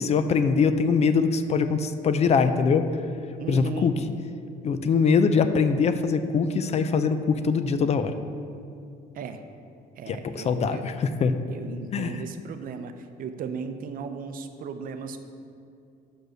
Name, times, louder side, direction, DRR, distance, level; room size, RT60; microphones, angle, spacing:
voice 1, 0.0-2.8 3.5-3.9 4.6-8.1 10.1-11.3 11.9-12.1, left 5 dB, 40° left, 10 dB, 0.4 m, -23 dB
voice 2, 3.4-4.0 9.1-9.4 10.0-10.8 11.5-15.2, right 5 dB, 55° right, 8 dB, 0.6 m, -36 dB
6.2 x 5.2 x 6.3 m, 2.5 s
cardioid pair, 110°, 17 cm